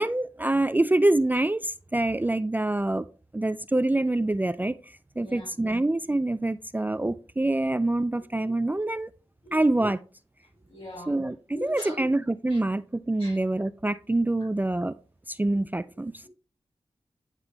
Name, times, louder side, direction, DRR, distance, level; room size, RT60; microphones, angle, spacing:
voice 1, 0.0-3.1 3.3-4.7 5.2-9.1 9.5-10.0 11.1-14.9 15.3-16.3, right 2 dB, 15° right, 0.3 m, -25 dB
voice 2, 5.2-5.5 10.7-11.1 11.5-12.0 12.5-12.6 13.2-13.4, left 1 dB, 70° left, 3.3 m, -41 dB
9.7 x 3.6 x 2.9 m
cardioid pair, 45°, 11 cm